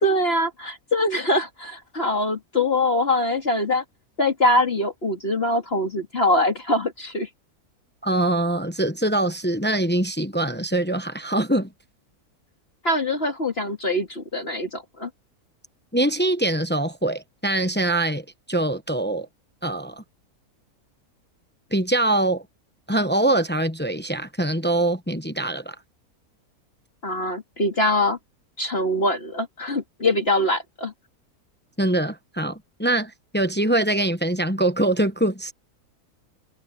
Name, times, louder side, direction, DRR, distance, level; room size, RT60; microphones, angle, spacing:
voice 1, 0.0-3.8 4.2-7.3 12.8-15.1 27.0-28.2 28.6-30.9, left 1 dB, 40° left, 2.6 m, -23 dB
voice 2, 8.0-11.7 15.9-19.3 19.6-20.0 21.7-22.4 22.9-25.7 31.8-35.5, right 1 dB, 10° left, 0.7 m, -23 dB
omnidirectional pair, 1.6 m